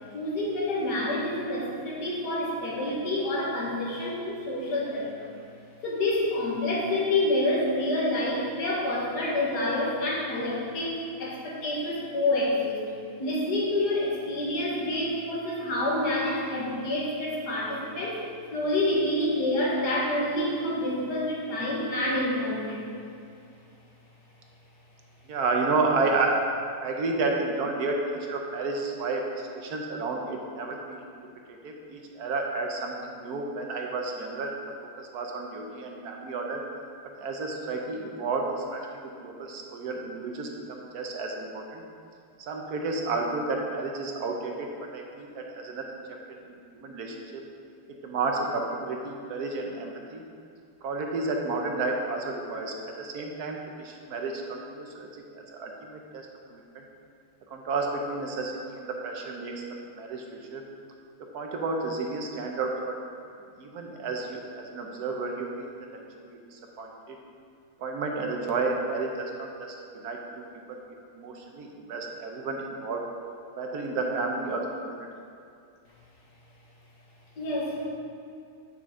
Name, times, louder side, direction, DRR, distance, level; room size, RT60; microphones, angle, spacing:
voice 1, 0.1-5.3 5.8-12.9 13.2-22.9 77.4-77.9, left 1 dB, 60° left, -4 dB, 1.9 m, -28 dB
voice 2, 25.3-26.4 26.8-31.0 31.5-34.5 35.0-36.6 37.2-41.8 42.4-44.7 44.9-45.8 46.5-47.2 48.0-50.2 50.8-55.1 55.3-56.3 56.5-56.8 57.5-59.6 60.0-60.2 60.5-60.6 61.3-63.0 63.6-67.2 67.8-70.8 71.1-73.1 73.6-75.1, right 3 dB, 65° right, 1 dB, 1.1 m, -31 dB
8.4 x 5.9 x 3.7 m, 2.4 s
omnidirectional pair, 2.1 m